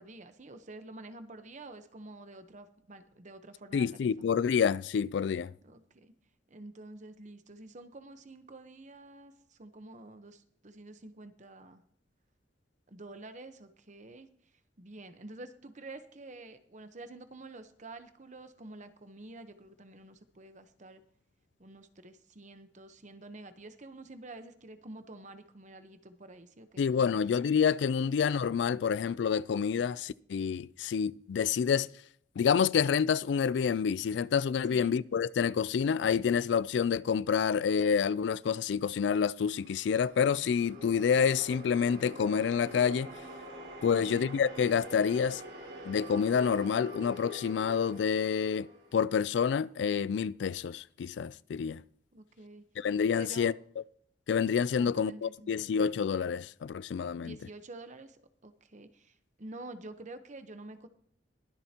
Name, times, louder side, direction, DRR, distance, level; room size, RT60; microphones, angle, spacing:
voice 1, 0.0-4.3 5.6-6.1 6.5-11.8 12.9-14.3 14.8-21.0 21.6-27.2 34.7-34.9 43.9-44.2 52.1-52.6 53.2-53.5 54.8-55.5 57.1-60.9, right 2 dB, 40° right, 1.0 m, -48 dB
voice 2, 3.7-5.5 26.8-31.9 32.4-43.1 43.8-45.4 45.9-51.8 52.8-53.5 54.3-57.4, left 7 dB, 70° left, 0.3 m, -28 dB
sound 1, 39.1-49.4, equal, 70° right, 5.7 m, -46 dB
21.5 x 7.7 x 2.9 m
head